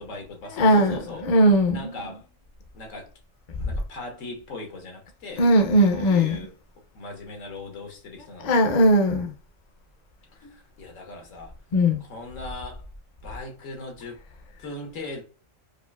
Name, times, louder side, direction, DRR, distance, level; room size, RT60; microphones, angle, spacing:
voice 1, 0.0-1.3 1.7-2.2 2.7-3.1 3.6-5.4 5.9-6.5 6.9-8.7 10.4-11.5 12.0-12.8 13.2-14.2 14.6-15.2, left 2 dB, 85° left, 1.4 m, -39 dB
voice 2, 0.6-2.0 5.4-6.4 8.4-9.3 11.7-12.0, equal, 45° left, 0.5 m, -19 dB
4.9 x 2.4 x 2.3 m
omnidirectional pair, 1.3 m